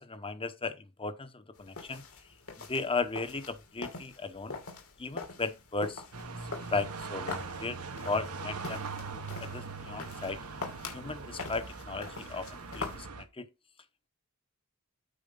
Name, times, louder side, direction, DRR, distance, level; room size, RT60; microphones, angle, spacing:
voice 1, 0.0-2.0 2.6-4.6 5.0-6.0 6.7-7.8 8.0-8.8 9.4-10.4 10.9-13.5, left 3 dB, 25° left, 1.0 m, -36 dB
sound 1, 1.5-13.0, left 3 dB, 70° left, 2.8 m, -44 dB
sound 2, 6.1-13.2, right 4 dB, 90° right, 1.5 m, -41 dB
9.0 x 4.8 x 5.4 m
head